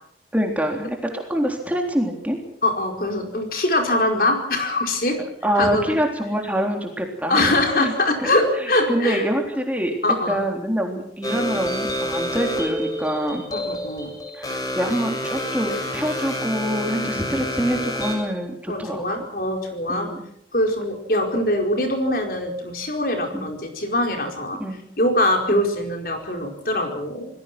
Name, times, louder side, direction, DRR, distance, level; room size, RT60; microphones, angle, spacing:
voice 1, 0.3-2.4 5.4-7.9 8.2-8.3 8.9-9.9 10.3-13.4 14.3-19.3 19.9-20.3 23.3-23.5 24.6-24.8 25.5-25.6, equal, 10° right, 2 dB, 3.6 m, -25 dB
voice 2, 2.6-5.2 5.6-5.9 7.3-9.2 10.0-10.4 13.5-14.1 17.0-17.4 18.7-20.1 20.5-24.6 25.0-27.3, left 1 dB, 50° left, 3 dB, 4.9 m, -23 dB
sound 1, 11.2-18.3, left 1 dB, 20° left, 7.2 m, -28 dB
28.5 x 20.5 x 6.1 m, 0.70 s
head